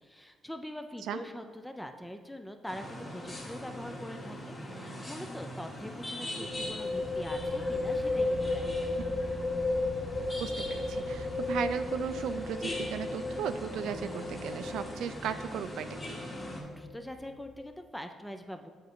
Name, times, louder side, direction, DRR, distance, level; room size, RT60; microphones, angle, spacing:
voice 1, 0.0-8.9 16.5-18.7, left 1 dB, 5° left, 6 dB, 0.3 m, -43 dB
sound 1, 2.7-16.6, left 1 dB, 25° left, 1.6 m, -42 dB
sound 2, 3.2-3.5 3.8-3.9 6.3-17.7, left 2 dB, 55° left, 0.8 m, -35 dB
voice 2, 10.4-16.2, right 8 dB, 80° right, 11 dB, 0.3 m, -36 dB
7.9 x 3.7 x 3.6 m, 1.5 s
cardioid pair, 90°, 0 cm